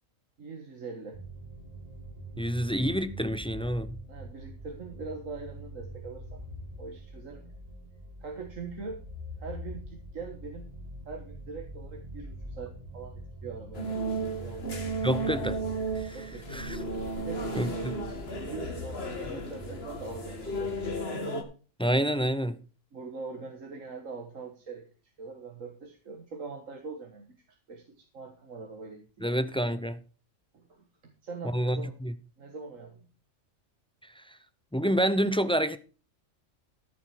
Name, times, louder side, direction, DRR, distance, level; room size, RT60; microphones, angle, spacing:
voice 1, 0.4-1.2 4.1-6.4 6.8-7.5 8.2-9.0 9.4-10.7 11.0-14.9 16.1-16.6 17.2-21.2 22.9-24.9 25.2-29.4 30.5-30.8 31.2-32.0 32.4-33.1, right 4 dB, 75° right, 2.0 m, -43 dB
sound 1, 1.1-21.0, right 1 dB, 30° right, 2.0 m, -44 dB
voice 2, 2.4-4.0 15.0-15.6 15.9-16.2 16.5-16.8 17.6-18.0 21.8-22.6 29.2-30.0 31.5-32.1 34.1-34.4 34.7-35.8, equal, 5° left, 0.4 m, -28 dB
sound 2, 13.7-21.4, right 2 dB, 50° left, 2.1 m, -34 dB
14.0 x 7.7 x 4.9 m
omnidirectional pair, 1.4 m